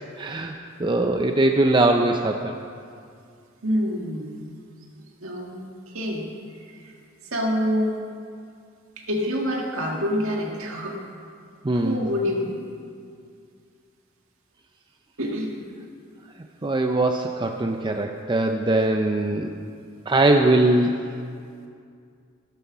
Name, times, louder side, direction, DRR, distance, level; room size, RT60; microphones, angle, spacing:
voice 1, 0.2-2.5 11.6-12.0 16.6-19.5 20.1-21.0, right 2 dB, 25° right, 4 dB, 0.5 m, -21 dB
voice 2, 3.6-4.4 5.2-6.3 6.6-6.9 7.3-8.0 9.0-11.0 11.7-12.7 15.2-15.6, equal, 85° right, 0 dB, 1.8 m, -27 dB
14.0 x 12.5 x 6.0 m, 2.3 s
head